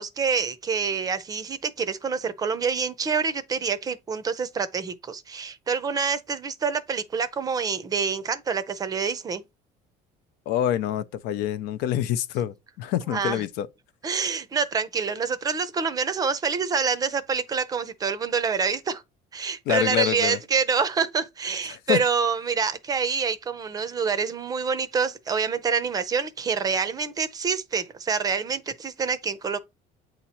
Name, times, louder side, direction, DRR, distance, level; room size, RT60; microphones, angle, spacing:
voice 1, 0.0-9.4 13.1-13.4 14.0-19.0 19.3-29.6, right 5 dB, 25° right, 0.5 m, -27 dB
voice 2, 10.5-13.7 19.7-20.4 21.7-22.0, left 11 dB, 80° left, 0.6 m, -26 dB
8.6 x 2.9 x 4.2 m
cardioid pair, 160°, 16 cm